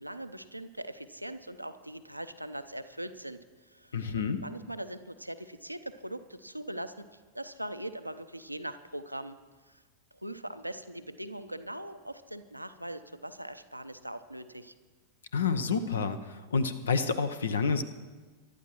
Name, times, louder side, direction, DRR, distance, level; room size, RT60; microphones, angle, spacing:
voice 1, 0.0-9.4 9.7-9.8 10.2-14.7, right 1 dB, 90° right, 9 dB, 0.6 m, -41 dB
voice 2, 3.9-4.4 15.3-17.8, left 5 dB, 70° left, 12 dB, 0.8 m, -29 dB
23.0 x 11.5 x 3.0 m, 1.4 s
figure-of-eight pair, 90°, 0 cm